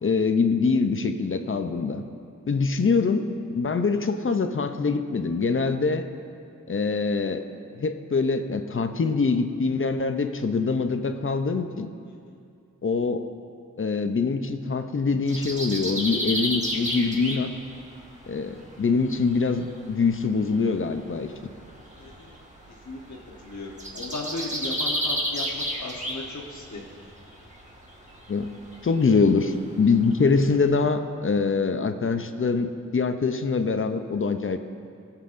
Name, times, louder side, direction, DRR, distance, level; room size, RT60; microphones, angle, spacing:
voice 1, 0.0-2.0 2.5-6.1 6.7-7.5 7.8-11.9 12.8-13.2 13.8-17.5 18.3-21.3 28.3-28.5 28.8-34.6, left 4 dB, 40° left, 8 dB, 0.5 m, -24 dB
sound 1, 15.3-30.6, equal, 20° right, 1.3 m, -34 dB
voice 2, 21.9-22.4 22.8-26.9, left 2 dB, 60° left, -2 dB, 1.1 m, -37 dB
19.0 x 7.3 x 2.6 m, 2.5 s
wide cardioid pair, 80°, 32 cm